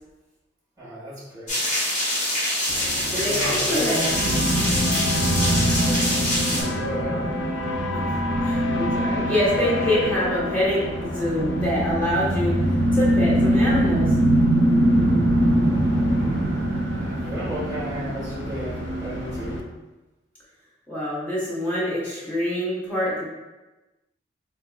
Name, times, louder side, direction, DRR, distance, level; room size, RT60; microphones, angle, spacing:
voice 1, 0.8-1.6 3.2-4.4 5.8-6.0 6.5-7.2 16.1-16.6 17.0-19.6, equal, 20° right, -8 dB, 1.3 m, -33 dB
sound 1, 1.5-6.6, left 1 dB, 40° left, 1.1 m, -25 dB
sound 2, 2.7-19.6, left 2 dB, 65° left, 0.4 m, -33 dB
voice 2, 3.1-4.0 7.9-8.1 8.4-12.6 12.9-14.1 20.9-23.2, left 1 dB, 10° left, -9 dB, 1.1 m, -25 dB
sound 3, 4.1-19.6, right 1 dB, 65° right, 0.7 m, -23 dB
4.3 x 2.7 x 2.3 m, 1.1 s
head